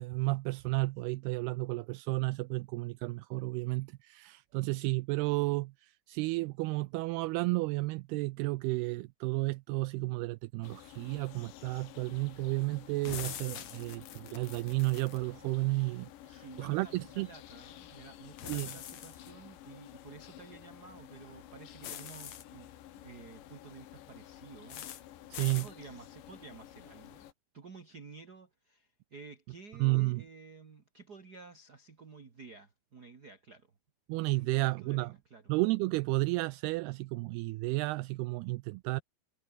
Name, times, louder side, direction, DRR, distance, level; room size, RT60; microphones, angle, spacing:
voice 1, 0.0-5.7 6.1-17.3 18.5-18.7 25.3-25.7 29.8-30.2 34.1-35.1 35.5-39.0, right 22 dB, 85° right, 2.3 m, -32 dB
sound 1, 10.6-27.3, left 12 dB, 80° left, 4.0 m, -52 dB
sound 2, 13.0-15.2 18.4-19.3 21.8-22.4 24.7-25.0 25.3-25.7, left 10 dB, 55° left, 2.2 m, -43 dB
voice 2, 13.6-13.9 16.3-22.7 23.0-24.9 25.6-33.7 34.4-35.5, right 4 dB, 45° right, 1.3 m, -52 dB
omnidirectional pair, 5.0 m